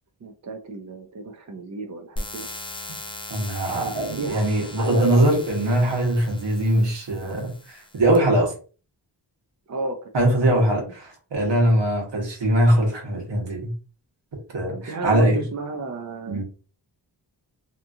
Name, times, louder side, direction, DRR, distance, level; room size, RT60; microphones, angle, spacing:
voice 1, 0.2-2.5 3.7-5.3 9.7-10.9 14.7-16.4, right 2 dB, 40° right, 3 dB, 0.5 m, -33 dB
sound 1, 2.2-8.2, left 1 dB, 15° left, 0.4 m, -39 dB
voice 2, 3.3-8.5 10.1-13.7 14.5-15.4 16.3-16.4, right 1 dB, 70° right, 0 dB, 1.2 m, -21 dB
2.9 x 2.3 x 2.6 m, 0.37 s
wide cardioid pair, 100°, 43 cm